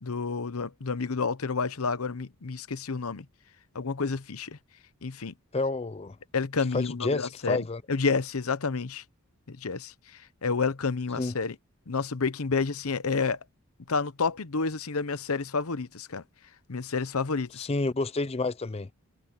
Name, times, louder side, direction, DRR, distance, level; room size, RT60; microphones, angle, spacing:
voice 1, 0.0-3.3 3.7-4.6 5.0-5.3 6.3-9.0 9.5-11.6 11.9-13.4 13.9-16.2 16.7-17.7, left 4 dB, 85° left, 0.9 m, -30 dB
voice 2, 5.5-6.2 6.7-7.8 11.2-11.3 17.6-18.9, left 3 dB, 30° left, 0.5 m, -29 dB
head